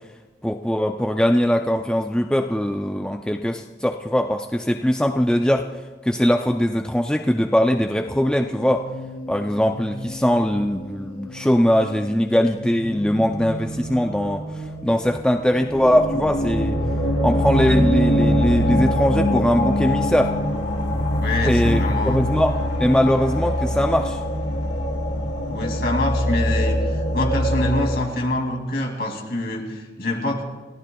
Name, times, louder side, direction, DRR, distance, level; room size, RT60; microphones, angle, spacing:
voice 1, 0.4-5.7 6.0-8.9 9.3-16.8 17.2-20.3 21.4-24.2, equal, 5° left, 4 dB, 0.4 m, -21 dB
sound 1, 8.0-28.0, equal, 90° left, 1.9 m, -24 dB
voice 2, 21.2-22.2 25.5-30.4, left 1 dB, 55° left, 1 dB, 2.5 m, -26 dB
30.0 x 15.0 x 2.3 m, 1.3 s
head